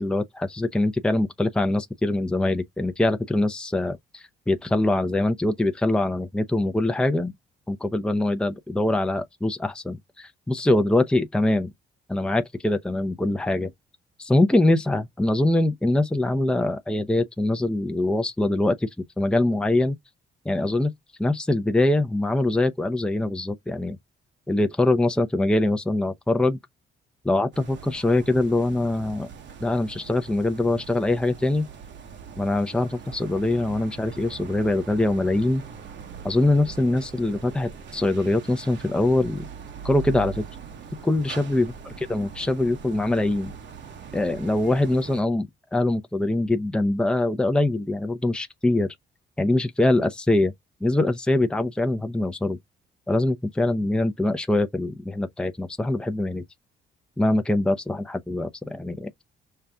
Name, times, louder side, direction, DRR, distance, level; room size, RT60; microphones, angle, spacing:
voice 1, 0.0-7.3 7.7-11.7 12.1-13.7 14.2-18.9 19.2-20.0 20.4-20.9 21.2-24.0 24.5-26.6 27.2-29.3 29.6-31.6 32.4-35.6 36.2-39.5 39.8-40.4 41.0-41.7 42.1-43.5 44.1-48.9 49.4-50.5 50.8-52.6 53.1-56.4 57.2-59.1, left 2 dB, 5° left, 0.6 m, -23 dB
sound 1, 27.5-45.2, right 7 dB, 65° right, 1.1 m, -41 dB
5.5 x 2.4 x 3.5 m
cardioid pair, 90°, 20 cm